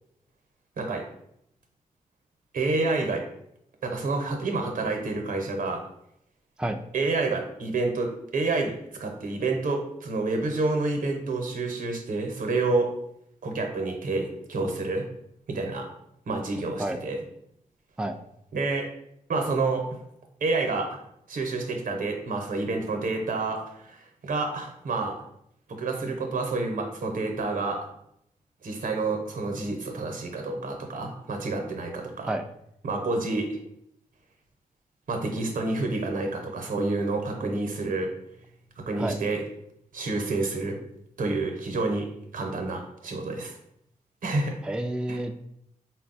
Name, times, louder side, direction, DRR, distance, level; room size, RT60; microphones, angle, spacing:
voice 1, 0.8-1.1 2.5-3.3 3.8-5.8 6.9-12.9 13.4-15.1 15.5-15.9 16.3-17.2 18.5-18.9 19.3-20.0 20.4-21.0 21.3-25.2 25.7-27.9 28.6-32.3 32.8-33.6 35.1-38.1 38.8-39.4 39.9-40.8 41.2-43.5 44.2-44.6 45.1-45.2, right 3 dB, 85° right, 3 dB, 0.8 m, -28 dB
voice 2, 44.6-45.4, right 1 dB, 5° right, 6 dB, 0.3 m, -29 dB
4.0 x 2.2 x 4.0 m, 0.75 s
cardioid pair, 65°, 14 cm